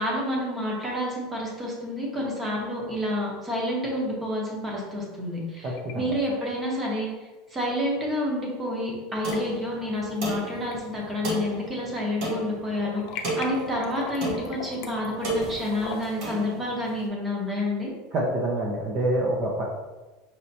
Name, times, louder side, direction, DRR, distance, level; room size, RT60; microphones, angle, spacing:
voice 1, 0.0-7.1 7.5-17.9, left 1 dB, 10° right, -3 dB, 0.9 m, -29 dB
sound 1, 5.2-5.9 6.2-6.3 7.8-7.9 9.0-9.4 9.9-10.4 10.7-12.1 12.3-16.3, left 6 dB, 50° left, 0.6 m, -40 dB
voice 2, 5.6-6.1 18.1-19.6, right 1 dB, 30° right, -3 dB, 0.6 m, -26 dB
sound 2, 9.2-17.0, right 1 dB, 50° right, 1.0 m, -34 dB
5.6 x 3.1 x 2.7 m, 1.2 s
supercardioid pair, 175°, 0 cm